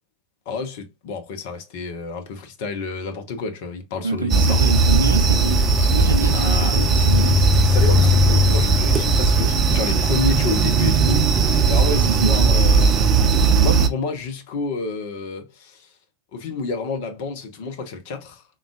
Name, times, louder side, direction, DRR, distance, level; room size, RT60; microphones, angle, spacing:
voice 1, 0.5-4.7 6.3-6.8 7.6-11.3 11.7-13.1 13.6-15.9 16.3-18.4, left 4 dB, 55° left, 0.8 m, -29 dB
voice 2, 4.0-7.5 11.9-12.7, right 3 dB, 80° right, 0.4 m, -26 dB
sound 1, 4.3-13.9, right 3 dB, 30° right, 0.5 m, -17 dB
3.7 x 2.3 x 2.3 m
figure-of-eight pair, 80°, 0 cm